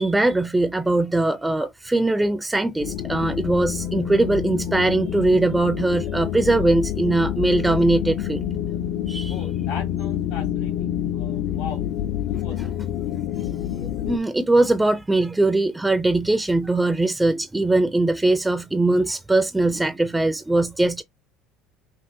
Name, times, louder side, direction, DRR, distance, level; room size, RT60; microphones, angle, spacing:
voice 1, 0.0-8.4 9.1-9.3 13.4-13.5 14.1-21.0, right 2 dB, 10° right, 0.4 m, -21 dB
sound 1, 2.8-14.2, left 11 dB, 60° left, 0.4 m, -27 dB
voice 2, 9.3-11.9 12.3-12.7, left 6 dB, 85° left, 2.2 m, -37 dB
5.6 x 2.4 x 2.6 m
cardioid pair, 140°, 0 cm